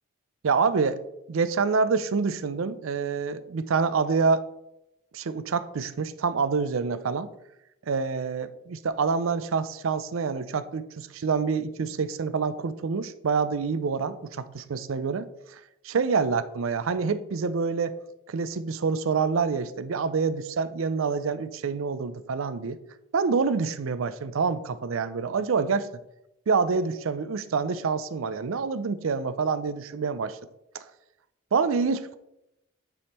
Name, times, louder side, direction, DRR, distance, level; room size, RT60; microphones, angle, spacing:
voice 1, 0.4-1.0 1.3-4.4 5.1-7.3 7.9-15.6 15.9-18.0 18.3-22.8 23.1-25.9 26.5-30.4 30.7-30.8 31.5-32.2, right 5 dB, 85° right, 14 dB, 0.5 m, -27 dB
9.3 x 3.6 x 4.2 m, 0.86 s
head